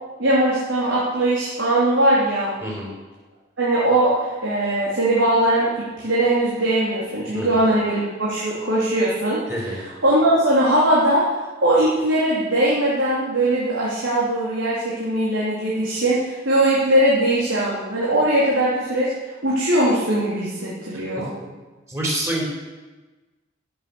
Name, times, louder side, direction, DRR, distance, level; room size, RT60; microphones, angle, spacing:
voice 1, 0.2-2.5 3.6-9.4 10.0-11.2 11.6-19.1 19.4-21.3, right 1 dB, 90° right, -7 dB, 3.6 m, -20 dB
voice 2, 9.5-9.8 21.9-22.4, right 1 dB, 15° right, -2 dB, 4.1 m, -26 dB
15.0 x 8.1 x 7.1 m, 1.2 s
head